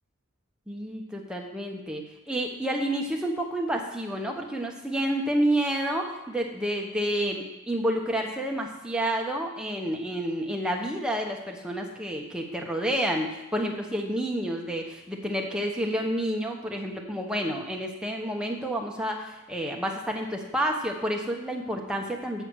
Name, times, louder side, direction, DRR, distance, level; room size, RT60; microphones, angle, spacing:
voice 1, 0.7-22.4, right 1 dB, 5° right, 0 dB, 1.1 m, -29 dB
8.0 x 7.6 x 6.4 m, 0.99 s
head